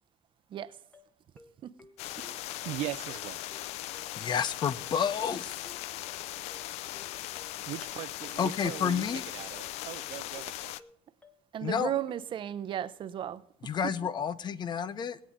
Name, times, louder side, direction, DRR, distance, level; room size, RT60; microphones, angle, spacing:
sound 1, 0.9-12.1, left 1 dB, 15° left, 1.2 m, -56 dB
sound 2, 2.0-10.8, left 14 dB, 80° left, 0.5 m, -39 dB
voice 1, 2.6-3.4 7.7-10.7, right 16 dB, 80° right, 0.5 m, -40 dB
voice 2, 4.1-5.6 8.4-9.2 11.6-11.9 13.6-15.2, left 7 dB, 45° left, 0.7 m, -30 dB
voice 3, 11.5-13.4, right 10 dB, 50° right, 0.8 m, -34 dB
21.5 x 8.4 x 3.7 m
cardioid pair, 110°, 11 cm